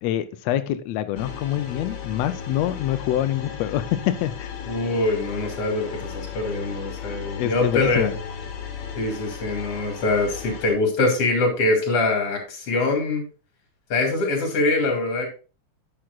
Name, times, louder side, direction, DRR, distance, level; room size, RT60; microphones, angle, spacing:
voice 1, 0.0-4.5 7.4-8.1, left 12 dB, 85° left, 10 dB, 1.5 m, -25 dB
sound 1, 1.2-10.7, left 6 dB, 70° left, 2.4 m, -35 dB
voice 2, 4.6-8.1 9.0-13.2 13.9-15.3, left 2 dB, 50° left, 3 dB, 3.1 m, -23 dB
10.5 x 7.7 x 2.4 m, 0.34 s
omnidirectional pair, 3.6 m